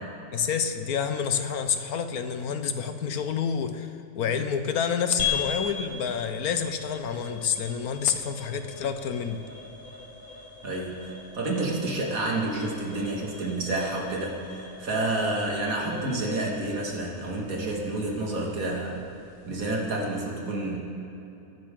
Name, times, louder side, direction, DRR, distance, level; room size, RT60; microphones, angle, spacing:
voice 1, 0.3-9.4, left 7 dB, 90° left, 8 dB, 1.4 m, -28 dB
sound 1, 5.2-19.8, left 7 dB, 30° left, 1.5 m, -39 dB
voice 2, 10.6-19.0 19.5-20.8, right 2 dB, 70° right, -2 dB, 2.6 m, -29 dB
23.0 x 12.0 x 3.8 m, 3.0 s
omnidirectional pair, 1.5 m